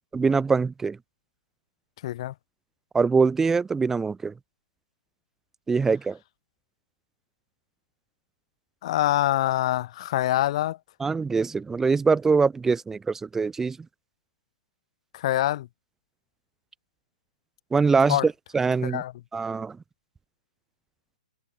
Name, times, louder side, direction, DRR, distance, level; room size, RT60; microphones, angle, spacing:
voice 1, 0.1-1.0 2.9-4.3 5.7-6.2 11.0-13.8 17.7-19.0 19.3-19.8, right 4 dB, 10° right, 1.6 m, -23 dB
voice 2, 2.0-2.3 8.8-10.8 15.1-15.7 18.1-18.3 18.8-19.1, left 14 dB, 50° left, 2.0 m, -25 dB
figure-of-eight pair, 125°, 4 cm